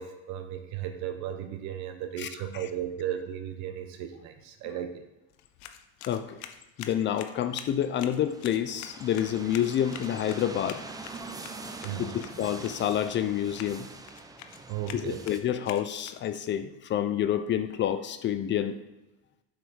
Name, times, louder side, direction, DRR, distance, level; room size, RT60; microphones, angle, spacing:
voice 1, 0.0-5.0 11.8-12.2 14.7-15.2, right 10 dB, 60° right, 7 dB, 1.0 m, -35 dB
sound 1, 5.3-16.5, left 10 dB, 65° left, 0.8 m, -47 dB
voice 2, 6.8-10.8 12.0-13.9 14.9-18.8, left 10 dB, 35° left, 10 dB, 0.5 m, -28 dB
sound 2, 7.5-15.4, right 3 dB, 10° right, 0.6 m, -44 dB
7.6 x 4.9 x 5.1 m, 0.99 s
supercardioid pair, 120°, 31 cm